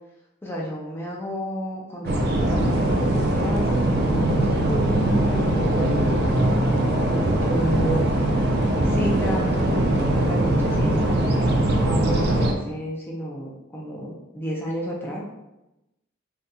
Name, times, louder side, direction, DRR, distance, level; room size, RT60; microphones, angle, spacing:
voice 1, 0.4-6.7 7.4-8.0 8.8-15.2, equal, 10° left, -4 dB, 0.5 m, -31 dB
sound 1, 2.0-12.5, right 1 dB, 55° right, 0.4 m, -21 dB
3.9 x 2.7 x 2.2 m, 0.95 s
head